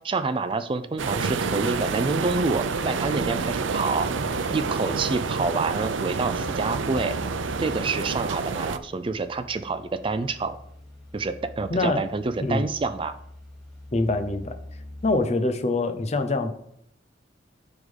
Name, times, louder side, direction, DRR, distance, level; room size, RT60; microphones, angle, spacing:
voice 1, 0.0-4.1 4.5-7.2 7.6-10.6 11.1-13.2, right 3 dB, 25° right, 11 dB, 0.4 m, -27 dB
sound 1, 1.0-8.8, right 4 dB, 85° right, 0.5 m, -28 dB
sound 2, 1.5-15.2, left 1 dB, ahead, 2.3 m, -45 dB
voice 2, 11.7-12.0 12.4-12.6 13.9-14.6 15.0-16.5, left 2 dB, 35° left, 8 dB, 0.7 m, -24 dB
9.6 x 3.7 x 5.2 m, 0.70 s
head